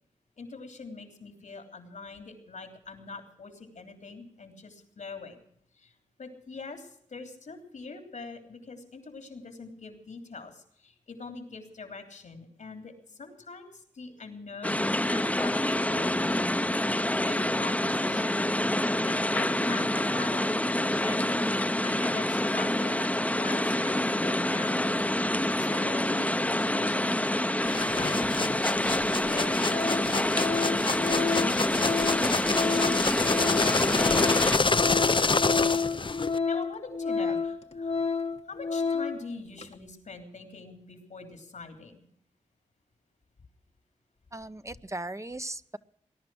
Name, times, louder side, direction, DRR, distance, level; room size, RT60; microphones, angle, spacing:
voice 1, 0.4-5.4 5.7-5.9 6.2-16.7 17.2-18.4 18.7-21.3 21.8-24.9 25.6-29.6 30.1-31.6 31.9-32.7 33.1-34.6 36.5-37.9 38.5-42.1, left 4 dB, 85° left, 5 dB, 3.3 m, -43 dB
sound 1, 14.6-34.6, left 1 dB, 10° left, 0.8 m, -27 dB
sound 2, 27.7-36.4, left 4 dB, 40° left, 0.6 m, -28 dB
Organ, 28.6-28.7 29.3-29.4 29.7-39.3 39.6-39.7, left 5 dB, 60° left, 1.2 m, -30 dB
voice 2, 44.3-45.8, right 2 dB, 25° right, 12 dB, 0.8 m, -38 dB
20.0 x 11.0 x 6.2 m, 0.69 s
cardioid pair, 40°, 12 cm